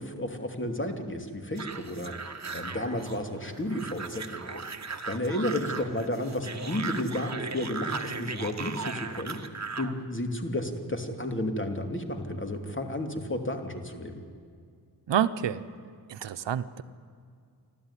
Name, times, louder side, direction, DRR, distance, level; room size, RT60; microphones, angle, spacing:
voice 1, 0.0-4.7 5.1-14.2, left 1 dB, 30° left, 5 dB, 2.8 m, -32 dB
sound 1, 1.6-9.9, right 4 dB, 40° right, 1.6 m, -38 dB
voice 2, 15.1-15.6 16.1-16.8, right 9 dB, 85° right, 12 dB, 0.9 m, -28 dB
29.0 x 12.5 x 9.9 m, 2.2 s
cardioid pair, 60°, 42 cm